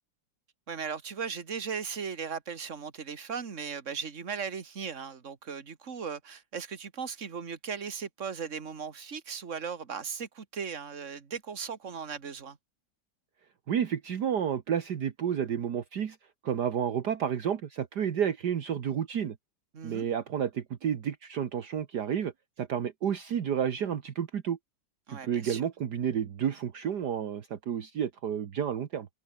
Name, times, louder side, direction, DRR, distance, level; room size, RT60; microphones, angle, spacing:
voice 1, 0.7-12.6 19.7-20.1 25.1-25.6, right 6 dB, 40° right, 2.2 m, -37 dB
voice 2, 13.7-16.2 16.4-19.4 19.8-22.3 22.6-24.6 25.1-29.1, right 8 dB, 60° right, 1.8 m, -31 dB
omnidirectional pair, 2.1 m